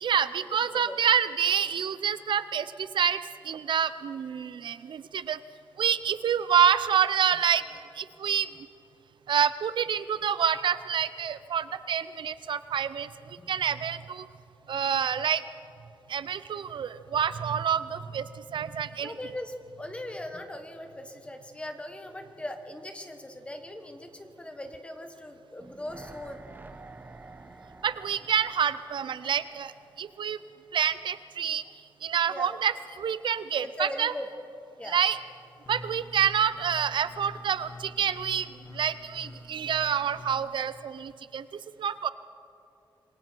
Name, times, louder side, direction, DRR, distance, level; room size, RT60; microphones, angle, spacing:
voice 1, 0.0-5.4 5.8-7.6 8.0-8.5 9.3-14.3 14.7-15.4 16.1-19.1 27.8-29.7 30.0-30.4 30.7-31.6 32.0-34.1 34.9-35.2 35.7-41.4 41.8-42.1, right 8 dB, 65° right, 14 dB, 0.5 m, -27 dB
voice 2, 19.0-26.4 32.3-32.6 33.6-34.3 34.8-35.0, left 1 dB, 15° left, 6 dB, 1.4 m, -39 dB
sound 1, 25.6-30.7 31.0-31.1, right 3 dB, 20° right, 0.8 m, -50 dB
sound 2, 35.0-40.5, left 1 dB, 30° left, 1.3 m, -46 dB
27.5 x 22.0 x 4.5 m, 2.7 s
wide cardioid pair, 165°, 9 cm